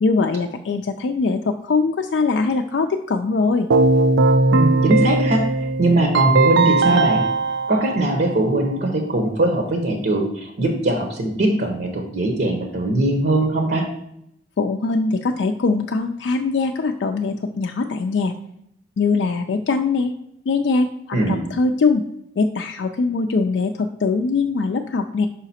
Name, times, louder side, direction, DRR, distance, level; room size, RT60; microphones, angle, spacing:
voice 1, 0.0-3.7 14.6-18.3 19.0-20.1 20.5-22.0 22.4-25.3, left 4 dB, 65° left, 4 dB, 0.4 m, -21 dB
Keyboard (musical), 3.7-8.7, right 3 dB, 80° right, 0.5 m, -19 dB
voice 2, 4.5-5.4 5.8-7.2 7.7-13.8 21.1-21.5, right 1 dB, 60° right, 3 dB, 0.9 m, -20 dB
5.6 x 4.9 x 4.2 m, 0.76 s
head